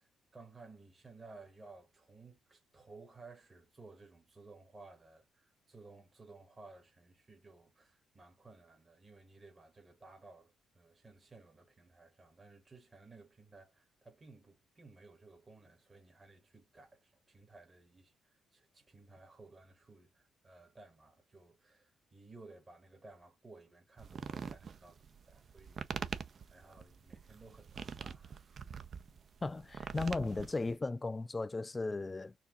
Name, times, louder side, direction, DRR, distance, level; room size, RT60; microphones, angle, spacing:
voice 1, 0.0-28.5, right 3 dB, 30° right, 1.3 m, -57 dB
sound 1, 24.0-30.8, right 6 dB, 55° right, 0.6 m, -44 dB
voice 2, 29.4-32.3, left 3 dB, 25° left, 0.3 m, -36 dB
4.4 x 2.7 x 2.4 m
supercardioid pair, 65°, 0 cm